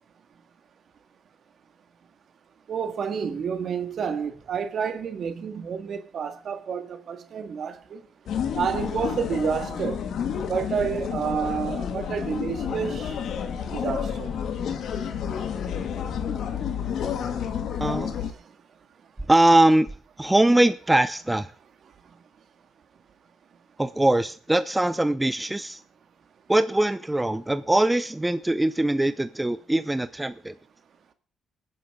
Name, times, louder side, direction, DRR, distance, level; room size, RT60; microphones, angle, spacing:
voice 1, 2.7-8.0 8.5-10.0 10.5-13.2 13.7-14.3, right 6 dB, 60° right, 1.8 m, -29 dB
sound 1, 8.3-18.3, left 8 dB, 75° left, 2.1 m, -30 dB
voice 2, 17.8-18.1 19.3-19.9 20.2-21.5 23.8-25.8 26.5-30.5, right 1 dB, 10° right, 0.7 m, -22 dB
21.0 x 9.7 x 3.7 m
cardioid pair, 80°, 0 cm